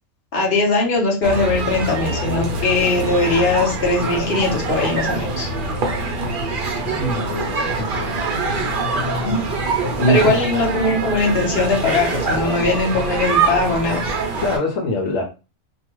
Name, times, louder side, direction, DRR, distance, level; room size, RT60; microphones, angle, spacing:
voice 1, 0.3-5.5 9.2-9.4 10.1-14.0, left 3 dB, 50° left, 1.2 m, -20 dB
sound 1, 1.2-14.6, right 3 dB, 50° right, 0.7 m, -24 dB
voice 2, 6.9-8.2 10.0-10.4 14.4-15.2, equal, 85° left, 1.1 m, -23 dB
2.9 x 2.3 x 2.9 m
omnidirectional pair, 1.4 m